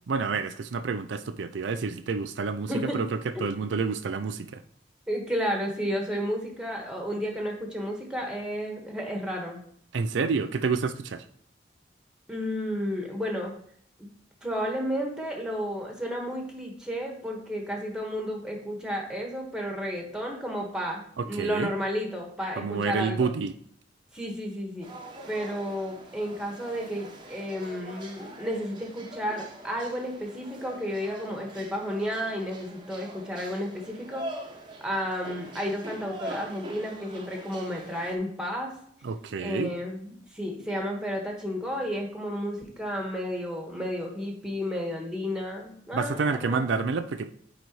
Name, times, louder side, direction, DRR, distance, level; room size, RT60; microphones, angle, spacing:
voice 1, 0.1-4.6 9.9-11.2 21.2-21.7 22.6-23.5 39.0-39.7 45.9-47.3, right 4 dB, 85° right, 9 dB, 0.5 m, -29 dB
voice 2, 5.1-9.6 12.3-13.5 14.4-23.3 24.1-24.9 25.3-34.3 34.8-38.7 39.4-46.7, equal, 5° right, 1 dB, 1.5 m, -32 dB
sound 1, 24.8-38.2, right 1 dB, 25° right, 1.0 m, -43 dB
9.0 x 4.1 x 3.1 m, 0.64 s
head